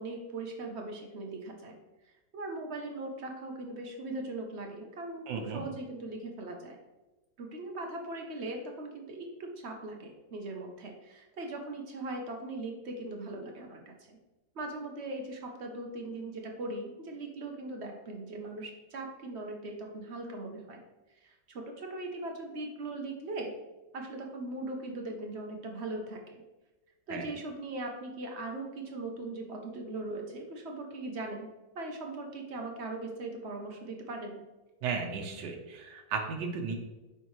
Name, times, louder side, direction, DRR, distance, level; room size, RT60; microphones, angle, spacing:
voice 1, 0.0-1.8 2.0-6.8 7.4-14.2 14.5-20.8 21.2-23.5 23.9-26.4 27.1-34.4, right 2 dB, 55° right, 2 dB, 0.8 m, -40 dB
voice 2, 5.3-5.6 27.1-27.3 34.8-36.7, right 5 dB, 80° right, 4 dB, 1.4 m, -35 dB
9.2 x 3.4 x 3.1 m, 1.1 s
omnidirectional pair, 1.9 m